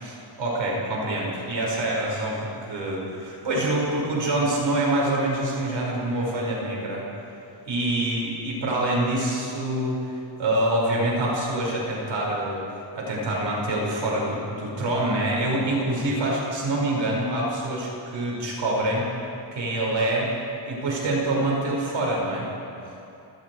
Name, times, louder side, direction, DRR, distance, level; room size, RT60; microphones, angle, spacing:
voice 1, 0.0-7.1 7.6-19.1 19.5-20.3 20.7-22.5, right 1 dB, 70° right, -3 dB, 6.0 m, -26 dB
29.5 x 19.5 x 4.9 m, 2.7 s
wide cardioid pair, 125°, 46 cm